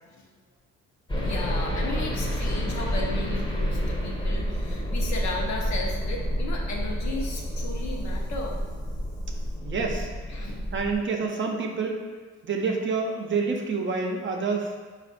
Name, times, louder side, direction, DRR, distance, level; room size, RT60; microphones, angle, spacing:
sound 1, 1.1-11.0, equal, 15° left, 0.8 m, -29 dB
voice 1, 1.2-8.6 10.3-10.6, left 2 dB, 65° left, -1 dB, 0.9 m, -35 dB
voice 2, 9.6-10.1 10.7-12.0 12.4-14.8, right 4 dB, 40° right, 1 dB, 0.6 m, -27 dB
4.2 x 2.5 x 4.1 m, 1.4 s
cardioid pair, 90°, 30 cm